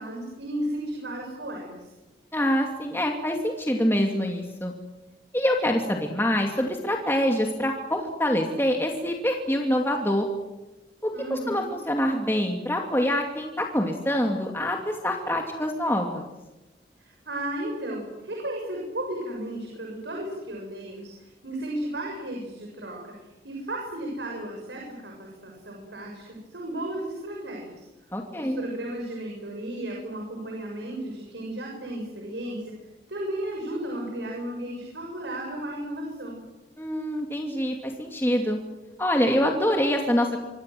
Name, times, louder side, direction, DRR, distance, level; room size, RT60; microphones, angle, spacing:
voice 1, 0.0-1.9 11.1-11.7 17.0-27.9 28.4-32.8 33.1-36.4, right 1 dB, 85° right, 0 dB, 7.0 m, -34 dB
voice 2, 2.3-4.7 5.3-10.3 11.0-16.3 28.1-28.6 36.8-38.6 39.0-40.4, equal, 15° left, 2 dB, 2.5 m, -25 dB
26.5 x 25.5 x 7.8 m, 1.0 s
head